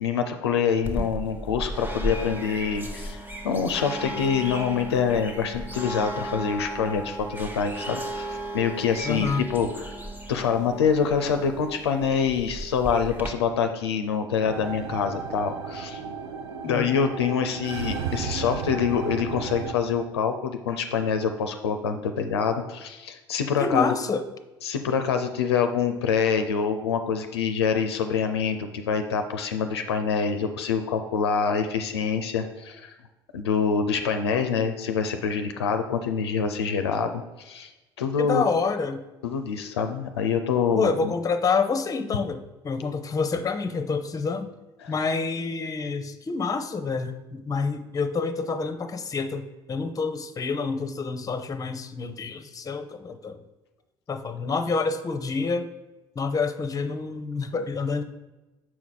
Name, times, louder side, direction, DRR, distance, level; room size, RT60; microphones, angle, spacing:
voice 1, 0.0-10.0 10.3-16.0 16.6-24.0 24.6-32.9 33.3-37.7 38.0-38.4 39.2-41.1 44.8-44.9, left 6 dB, 85° left, 7 dB, 0.4 m, -26 dB
sound 1, 0.8-13.3, right 1 dB, 15° right, 1.0 m, -35 dB
voice 2, 9.0-9.4 16.6-16.9 23.6-24.2 34.3-34.7 38.2-39.0 40.7-44.5 44.9-53.4 54.1-55.7 56.2-58.0, left 4 dB, 25° left, 10 dB, 0.6 m, -28 dB
sound 2, 14.4-19.7, right 6 dB, 80° right, 0.5 m, -34 dB
6.0 x 4.7 x 3.9 m, 1.1 s
hypercardioid pair, 55°, 13 cm